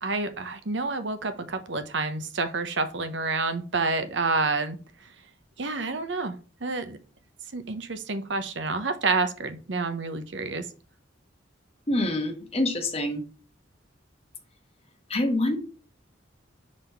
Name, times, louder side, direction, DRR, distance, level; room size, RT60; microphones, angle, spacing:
voice 1, 0.0-4.8 5.6-6.3 6.6-7.0 7.5-10.7, right 3 dB, 65° right, 10 dB, 0.9 m, -28 dB
voice 2, 11.9-13.2 15.1-15.6, left 1 dB, 30° left, 4 dB, 1.2 m, -26 dB
5.1 x 4.1 x 5.6 m, 0.36 s
head